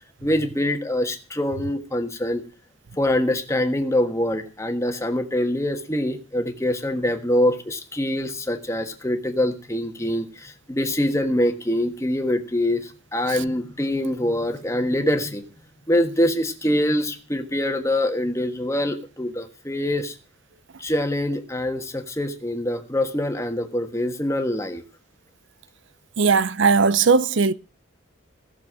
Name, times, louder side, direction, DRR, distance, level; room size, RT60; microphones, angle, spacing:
voice 1, 0.2-2.4 3.0-15.4 15.9-20.1 20.8-24.8, left 1 dB, 15° left, 1.4 m, -24 dB
voice 2, 26.2-27.5, right 5 dB, 60° right, 0.6 m, -18 dB
17.0 x 7.0 x 6.1 m
head